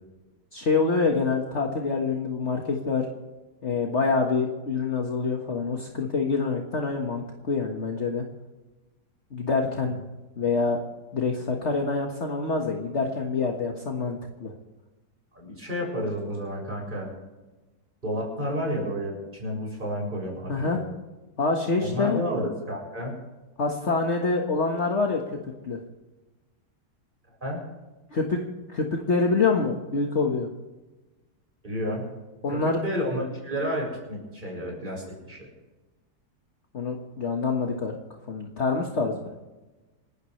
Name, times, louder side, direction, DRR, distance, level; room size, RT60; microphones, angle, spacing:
voice 1, 0.5-3.1 3.6-8.2 9.3-10.0 10.4-10.8 11.1-14.5 20.5-20.8 21.4-22.2 23.6-25.2 25.6-25.8 28.1-28.4 28.7-30.5 32.4-32.8 36.7-38.0 38.3-39.3, left 4 dB, 40° left, 1 dB, 1.8 m, -26 dB
voice 2, 15.3-17.1 18.0-20.8 21.8-23.2 27.4-27.6 31.6-32.1 32.5-35.5, equal, 25° right, -2 dB, 7.0 m, -31 dB
28.5 x 13.0 x 3.3 m, 1.1 s
omnidirectional pair, 1.9 m